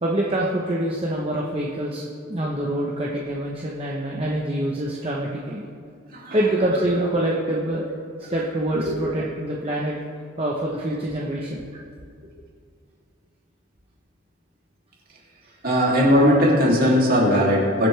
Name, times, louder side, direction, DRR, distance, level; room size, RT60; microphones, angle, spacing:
voice 1, 0.0-2.0 2.3-5.6 6.3-7.8 8.3-9.9 10.4-11.6 15.7-15.8, right 1 dB, 25° right, -3 dB, 0.9 m, -25 dB
voice 2, 15.6-17.9, equal, 45° right, -4 dB, 2.7 m, -18 dB
22.0 x 7.9 x 3.3 m, 2.2 s
head